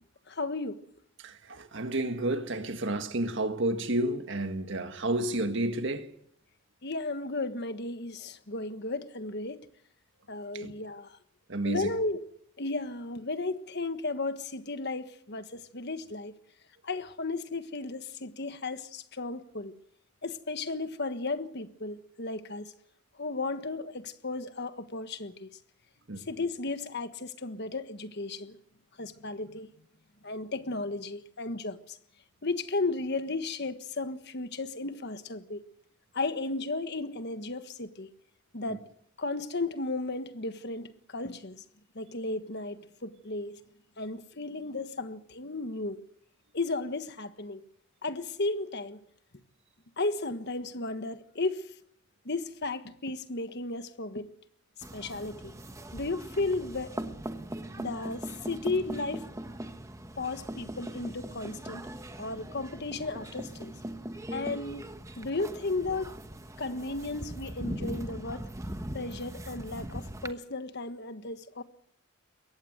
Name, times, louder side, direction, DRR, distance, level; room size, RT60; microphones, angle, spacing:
voice 1, 0.3-0.8 6.8-9.6 10.3-11.2 11.6-12.2 12.6-16.3 16.8-19.7 20.2-22.7 23.2-25.5 26.2-28.6 29.0-29.7 30.2-32.0 32.4-35.7 36.1-38.1 38.5-38.8 39.2-41.6 41.9-43.6 44.0-46.0 46.5-47.6 48.0-49.0 50.0-51.7 52.2-54.3 54.9-55.5 55.9-57.0 57.8-59.3 60.2-61.9 62.2-63.7 64.3-64.9 65.2-66.1 66.6-68.5 68.9-71.6, left 3 dB, 50° left, 1.4 m, -34 dB
voice 2, 1.2-6.1 10.5-10.7 11.5-11.9 26.1-26.3, right 1 dB, 60° right, 1.8 m, -31 dB
sound 1, 54.8-70.3, right 1 dB, 15° right, 1.2 m, -40 dB
23.0 x 18.0 x 8.0 m
head